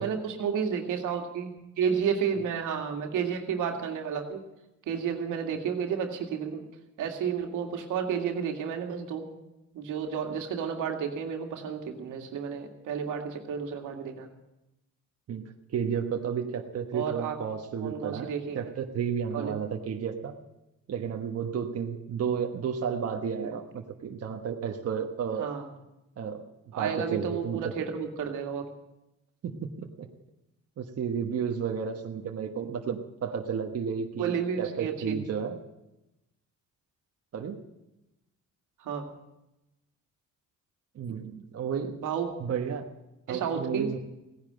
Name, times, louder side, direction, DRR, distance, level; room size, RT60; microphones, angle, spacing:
voice 1, 0.0-4.4 4.9-6.6 7.0-9.3 9.7-14.3 16.9-17.4 17.8-18.7 19.3-19.5 23.5-23.6 25.4-25.7 26.7-28.7 34.2-35.2 38.8-39.0 41.0-41.2 42.0-42.3 43.3-43.9, right 7 dB, 90° right, 3 dB, 2.1 m, -31 dB
voice 2, 15.3-20.4 20.9-25.5 26.2-27.7 29.4-30.1 30.8-35.6 37.3-37.6 40.9-42.0 42.4-42.9 43.3-44.0, right 7 dB, 55° right, 3 dB, 1.2 m, -32 dB
17.0 x 10.5 x 7.6 m, 0.94 s
cardioid pair, 90°, 30 cm